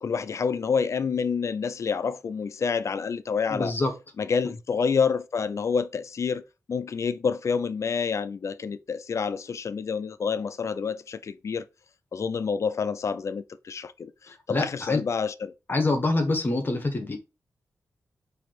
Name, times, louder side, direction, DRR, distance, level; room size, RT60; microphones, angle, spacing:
voice 1, 0.0-3.7 4.2-6.4 6.7-11.7 12.1-15.5, left 5 dB, 55° left, 0.4 m, -28 dB
voice 2, 3.5-3.9 14.3-15.0 15.7-17.2, left 2 dB, 35° left, 1.1 m, -26 dB
4.6 x 2.8 x 3.9 m
cardioid pair, 85°, 6 cm